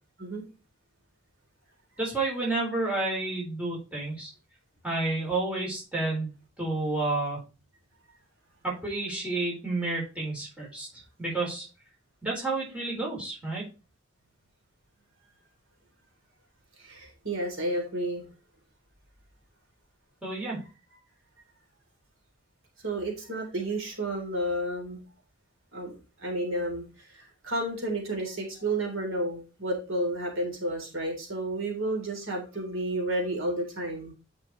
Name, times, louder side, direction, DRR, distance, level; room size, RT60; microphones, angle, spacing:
voice 1, 2.0-4.3 4.8-7.4 8.6-10.9 11.2-11.7 12.2-13.6 20.2-20.6, right 2 dB, 5° right, -5 dB, 4.3 m, -30 dB
voice 2, 16.8-18.3 20.6-21.0 22.8-25.0 25.7-25.9 26.2-34.1, right 1 dB, 70° right, 0 dB, 3.7 m, -31 dB
9.9 x 5.9 x 3.2 m, 0.32 s
head